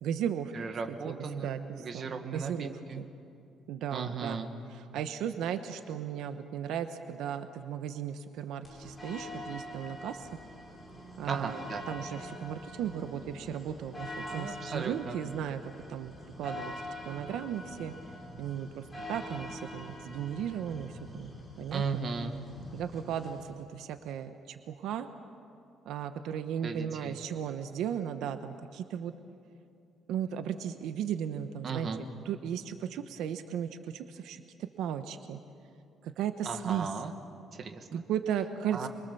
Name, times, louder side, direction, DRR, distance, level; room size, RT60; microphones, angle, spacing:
voice 1, 0.0-0.5 1.0-3.0 3.7-4.4 4.7-10.3 11.2-15.6 15.9-16.7 17.1-17.9 18.4-21.3 21.6-22.0 22.7-25.1 25.9-29.1 30.1-31.9 32.2-35.4 36.0-36.9 37.9-38.9, right 9 dB, 85° right, 8 dB, 1.0 m, -36 dB
voice 2, 0.5-3.0 3.9-4.5 11.2-11.8 14.3-15.2 21.7-22.3 26.6-27.2 31.6-32.0 36.4-37.1 37.5-38.0 38.7-38.9, right 5 dB, 40° right, 5 dB, 1.8 m, -36 dB
sound 1, 8.6-23.5, left 1 dB, 5° left, 5.7 m, -44 dB
27.5 x 23.5 x 7.0 m, 2.5 s
cardioid pair, 160°, 0 cm